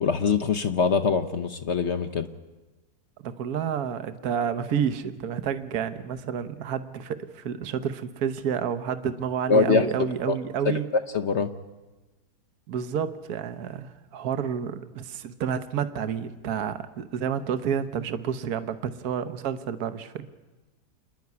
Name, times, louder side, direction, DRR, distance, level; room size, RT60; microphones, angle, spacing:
voice 1, 0.0-2.3 9.5-9.9 10.3-10.4 10.6-11.5, left 5 dB, 55° left, 8 dB, 0.9 m, -23 dB
voice 2, 3.2-10.9 12.7-20.3, right 8 dB, 65° right, 10 dB, 1.4 m, -30 dB
28.0 x 10.5 x 9.6 m, 1.2 s
omnidirectional pair, 1.8 m